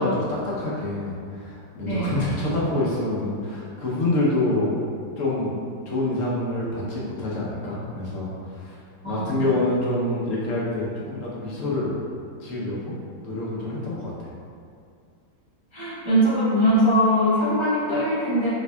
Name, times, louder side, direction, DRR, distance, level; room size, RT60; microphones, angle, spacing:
voice 1, 0.0-4.8 5.2-5.6 5.8-8.8 9.1-12.0 12.4-12.9 13.2-14.3, left 2 dB, 55° left, -6 dB, 1.0 m, -26 dB
voice 2, 1.8-2.2 9.0-9.4 15.7-18.5, equal, 45° right, -11 dB, 0.3 m, -21 dB
5.5 x 3.3 x 2.2 m, 2.4 s
omnidirectional pair, 2.0 m